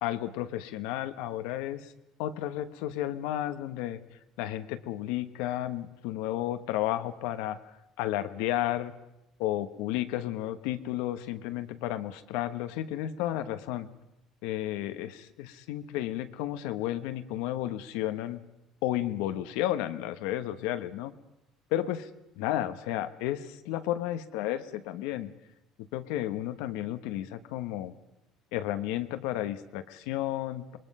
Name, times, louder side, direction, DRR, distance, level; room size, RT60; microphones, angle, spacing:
voice 1, 0.0-1.9 2.2-4.0 4.4-7.6 8.0-8.9 9.4-13.9 14.4-18.4 18.8-21.1 21.7-22.1 22.4-25.3 25.9-27.9 28.5-30.8, left 13 dB, 90° left, 11 dB, 1.2 m, -32 dB
27.5 x 21.0 x 5.5 m, 0.87 s
cardioid pair, 115°, 0 cm